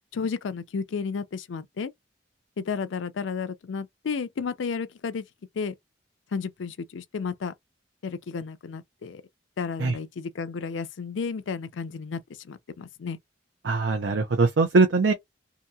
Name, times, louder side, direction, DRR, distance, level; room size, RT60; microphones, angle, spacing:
voice 1, 0.1-1.9 2.6-5.2 5.6-5.7 6.3-7.5 8.0-9.2 9.6-13.2, left 5 dB, 85° left, 0.4 m, -32 dB
voice 2, 13.6-15.1, right 3 dB, 75° right, 0.6 m, -21 dB
2.8 x 2.7 x 2.2 m
head